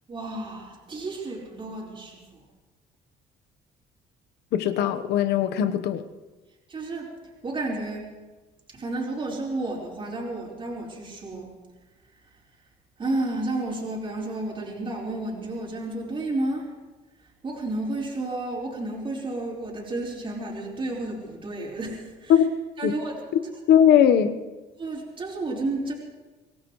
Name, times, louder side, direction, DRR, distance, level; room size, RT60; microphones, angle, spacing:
voice 1, 0.1-2.4 6.7-7.1 7.4-8.1 8.7-11.5 13.0-16.7 17.4-22.3 22.8-23.2 24.8-25.9, right 2 dB, 30° right, -3 dB, 4.6 m, -31 dB
voice 2, 4.5-6.0 22.3-22.5 22.8-22.9 23.7-24.3, left 9 dB, 80° left, 10 dB, 1.2 m, -19 dB
25.0 x 17.5 x 3.2 m, 1.2 s
cardioid pair, 110°, 17 cm